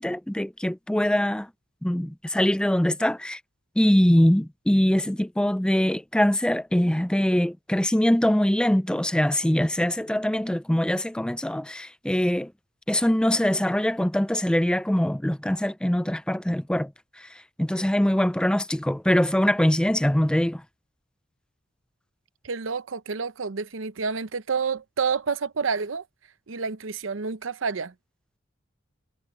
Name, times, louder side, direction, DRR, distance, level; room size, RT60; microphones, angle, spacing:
voice 1, 0.0-1.5 1.8-3.4 3.8-12.5 12.9-16.9 17.2-17.3 17.6-20.6, left 1 dB, 5° left, 0.4 m, -23 dB
voice 2, 22.4-26.0 26.5-27.9, right 5 dB, 80° right, 0.7 m, -29 dB
head